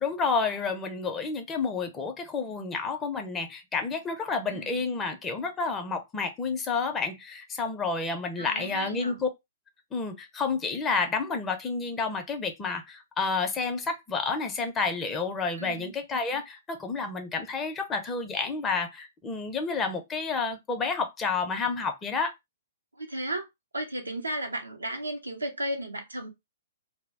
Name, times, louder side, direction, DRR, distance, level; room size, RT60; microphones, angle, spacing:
voice 1, 0.0-9.3 9.9-22.3, left 4 dB, 15° left, 0.5 m, -30 dB
voice 2, 4.5-4.8 8.4-9.2 15.6-15.9 22.9-23.5 23.7-26.3, right 1 dB, 80° right, 0.6 m, -34 dB
2.2 x 2.0 x 3.3 m
figure-of-eight pair, 115°, 0 cm